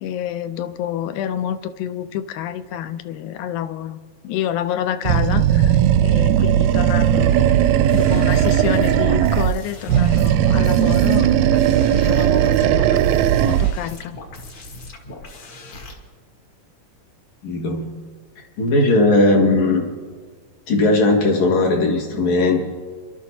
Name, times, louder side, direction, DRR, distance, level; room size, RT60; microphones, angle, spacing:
voice 1, 0.0-4.0 4.2-11.5 11.9-14.2, left 10 dB, 85° left, 11 dB, 2.1 m, -28 dB
Animal, 5.0-9.6 9.9-13.8, right 11 dB, 80° right, 1.6 m, -17 dB
sound 1, 7.9-15.9, left 2 dB, 45° left, 2.1 m, -39 dB
voice 2, 17.4-17.9 18.6-19.8 20.7-22.6, left 2 dB, 65° left, 0 dB, 3.2 m, -17 dB
29.0 x 12.0 x 2.8 m, 1.5 s
omnidirectional pair, 3.4 m